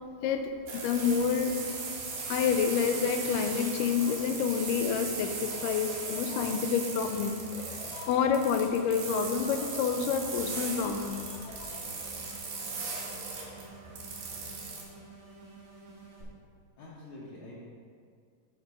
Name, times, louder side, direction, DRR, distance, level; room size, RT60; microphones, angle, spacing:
voice 1, 0.2-1.6 2.3-11.8, left 6 dB, 85° left, 6 dB, 2.2 m, -29 dB
sound 1, 0.7-14.8, right 4 dB, 70° right, 2.8 m, -38 dB
sound 2, 10.2-16.2, right 3 dB, 40° right, 1.3 m, -51 dB
voice 2, 15.2-15.5 16.8-17.6, left 2 dB, 65° left, -7 dB, 2.3 m, -47 dB
9.6 x 5.2 x 4.8 m, 2.1 s
omnidirectional pair, 3.8 m